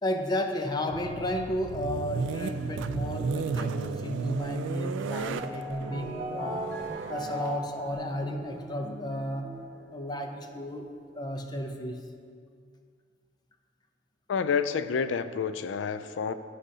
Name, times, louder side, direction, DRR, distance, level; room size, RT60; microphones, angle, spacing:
voice 1, 0.0-6.8 7.1-9.6 9.9-10.9 11.1-12.1, left 1 dB, 25° left, 4 dB, 0.6 m, -33 dB
sound 1, 0.9-8.7, right 5 dB, 80° right, 0.3 m, -34 dB
sound 2, 5.3-11.0, equal, 50° right, 1.5 m, -39 dB
voice 2, 14.3-16.3, left 6 dB, 80° left, 12 dB, 0.4 m, -29 dB
15.0 x 5.0 x 2.8 m, 2.2 s
head